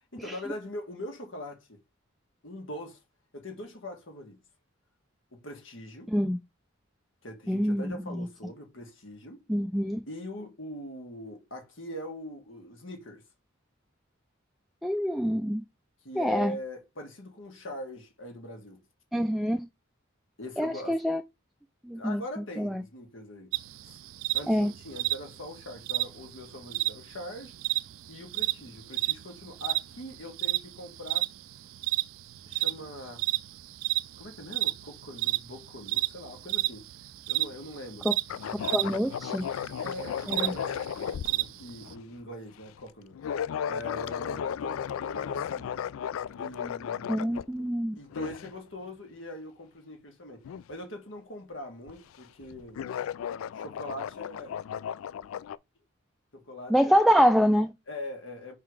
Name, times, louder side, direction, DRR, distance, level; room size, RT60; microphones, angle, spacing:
voice 1, 0.0-1.8 2.4-3.0 3.3-4.4 5.3-6.1 7.2-9.4 10.1-13.2 16.0-18.8 20.4-21.0 21.9-23.5 23.8-24.0 24.3-27.6 28.1-31.3 32.4-33.2 34.2-36.9 37.3-38.1 39.8-45.8 46.4-47.3 48.0-52.8 53.5-54.6 56.3-57.0 57.9-58.5, left 1 dB, 65° left, 1.8 m, -42 dB
voice 2, 7.5-7.9 9.5-10.0 14.8-15.6 16.2-16.5 19.1-19.7 20.6-21.2 21.9-22.2 22.6-22.8 24.5-24.7 38.7-39.4 40.3-40.5 47.1-47.9 56.7-57.7, equal, ahead, 0.3 m, -25 dB
sound 1, 23.5-41.9, right 17 dB, 80° right, 0.3 m, -32 dB
sound 2, 38.3-42.0 42.6-42.8 43.1-47.7 48.1-48.6 50.4-50.6 51.9-52.2 52.4-55.6, left 8 dB, 90° left, 0.3 m, -35 dB
5.7 x 3.8 x 4.8 m
head